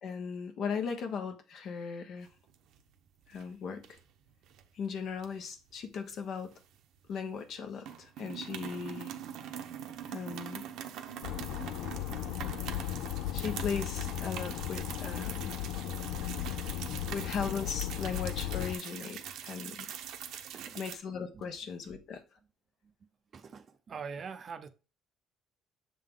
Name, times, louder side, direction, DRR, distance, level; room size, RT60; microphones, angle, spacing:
voice 1, 0.0-2.3 3.3-3.8 4.7-6.5 7.1-9.1 10.1-10.7 13.3-15.6 17.1-19.9 20.8-22.2, left 6 dB, 55° left, 1.1 m, -38 dB
sound 1, 2.3-2.9 3.2-3.5 3.8-4.6 5.2-7.1 7.4-7.5 7.8-21.0, right 9 dB, 75° right, 0.8 m, -43 dB
sound 2, 11.2-18.7, left 13 dB, 85° left, 0.3 m, -36 dB
voice 2, 20.4-20.8 23.3-24.7, right 6 dB, 35° right, 0.6 m, -43 dB
7.0 x 3.8 x 3.7 m
cardioid pair, 140°, 0 cm